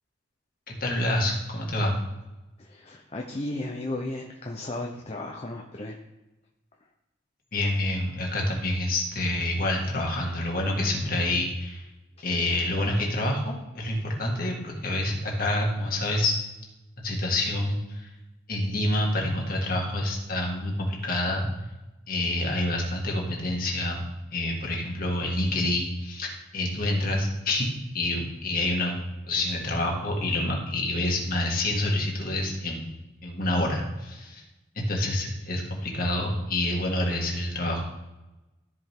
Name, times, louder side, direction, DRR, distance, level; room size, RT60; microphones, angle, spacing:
voice 1, 0.7-2.0 7.5-11.8 12.2-16.4 17.0-18.1 18.5-21.5 22.1-24.0 24.3-28.9 29.3-32.8 33.2-34.4 34.8-37.9, left 1 dB, 45° left, -1 dB, 2.0 m, -27 dB
voice 2, 2.6-6.0 12.2-12.3, left 1 dB, 30° left, 1 dB, 0.7 m, -35 dB
13.5 x 5.1 x 3.7 m, 1.0 s
head